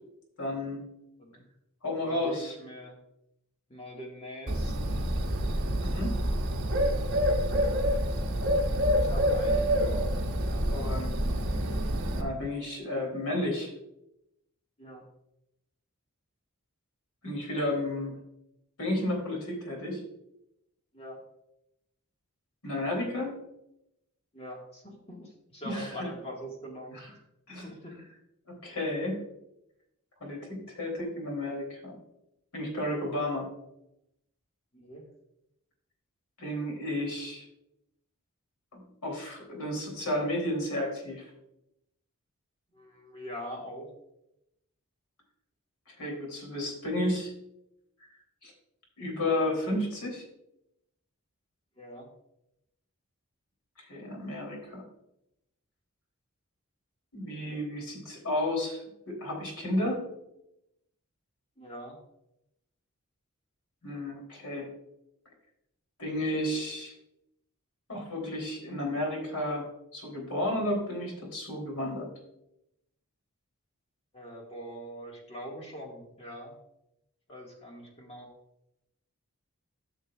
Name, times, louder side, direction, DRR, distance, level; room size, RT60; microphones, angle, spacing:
voice 1, 0.4-0.8 1.8-2.5 5.8-6.2 10.5-11.1 12.1-13.7 17.2-18.2 18.8-20.0 22.6-23.3 25.6-26.1 26.9-27.1 27.5-28.0 28.5-29.2 30.2-32.0 32.5-33.5 36.4-37.4 38.7-41.3 45.9-47.3 48.4-48.5 49.0-50.2 53.8-54.8 57.1-60.0 63.8-64.7 66.0-66.9 67.9-69.7 69.9-72.1, left 1 dB, 85° left, 0 dB, 3.4 m, -32 dB
voice 2, 2.0-2.9 3.7-5.1 9.0-9.7 14.8-15.0 20.9-21.2 24.3-27.1 27.6-28.0 34.7-35.1 42.7-43.9 51.8-52.1 61.6-62.0 74.1-76.6 77.3-78.3, equal, 25° left, -1 dB, 1.8 m, -43 dB
Bird, 4.5-12.2, equal, 55° right, 1.1 m, -27 dB
13.5 x 6.5 x 2.4 m, 0.84 s
head